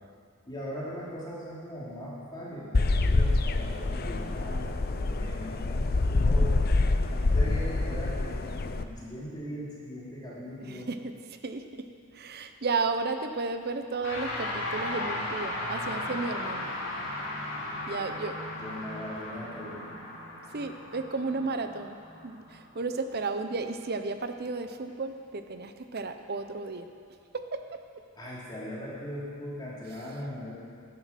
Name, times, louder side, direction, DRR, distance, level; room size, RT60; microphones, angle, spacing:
voice 1, 0.5-6.5 7.1-10.9 18.6-19.9 28.1-30.5, equal, 20° left, -7 dB, 3.2 m, -39 dB
sound 1, 2.7-8.8, left 2 dB, 45° left, 0.6 m, -26 dB
voice 2, 10.7-11.1 11.4-11.6 12.1-16.8 17.9-18.4 20.5-22.0 22.2-26.9 27.3-27.4, right 3 dB, 50° right, 7 dB, 0.8 m, -33 dB
sound 2, 14.0-23.5, left 1 dB, 65° left, 2.7 m, -36 dB
13.5 x 11.5 x 5.9 m, 2.3 s
head